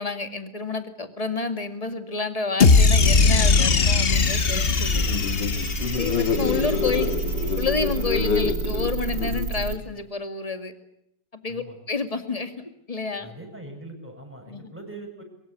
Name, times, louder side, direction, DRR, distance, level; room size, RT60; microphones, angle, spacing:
voice 1, 0.0-5.1 5.9-7.1 7.4-10.7 11.3-13.3 14.5-14.7, left 4 dB, 20° left, 8 dB, 2.2 m, -29 dB
sound 1, 2.6-6.9, left 4 dB, 40° left, 1.1 m, -20 dB
voice 2, 3.0-3.4 5.8-7.1 11.5-11.8 13.2-15.2, right 1 dB, 5° right, 2 dB, 7.4 m, -40 dB
sound 2, 4.1-9.8, right 5 dB, 75° right, 2.5 m, -31 dB
sound 3, 4.8-9.9, left 6 dB, 75° left, 2.3 m, -27 dB
24.0 x 22.5 x 8.5 m, 0.80 s
omnidirectional pair, 2.0 m